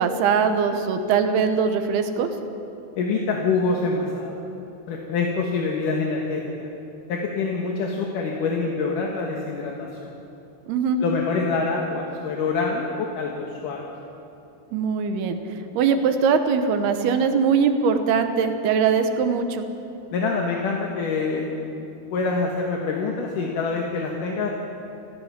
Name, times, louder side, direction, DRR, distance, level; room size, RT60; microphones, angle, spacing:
voice 1, 0.0-2.3 10.7-11.0 14.7-19.7, right 6 dB, 75° right, 7 dB, 2.9 m, -21 dB
voice 2, 3.0-4.4 4.9-6.7 7.1-10.1 11.0-13.9 20.1-21.9 22.1-24.5, left 4 dB, 60° left, 0 dB, 2.6 m, -26 dB
28.5 x 16.0 x 5.9 m, 2.8 s
omnidirectional pair, 4.9 m